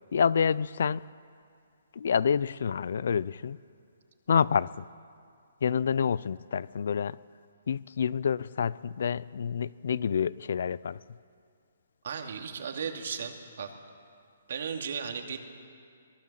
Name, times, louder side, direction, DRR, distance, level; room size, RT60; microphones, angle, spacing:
voice 1, 0.1-1.0 2.0-3.6 4.3-4.8 5.6-7.2 7.7-11.0, left 7 dB, 65° left, 21 dB, 0.5 m, -28 dB
voice 2, 12.0-13.7 14.5-15.4, right 6 dB, 60° right, 4 dB, 2.5 m, -35 dB
24.5 x 19.0 x 7.5 m, 2.3 s
hypercardioid pair, 160°, 0 cm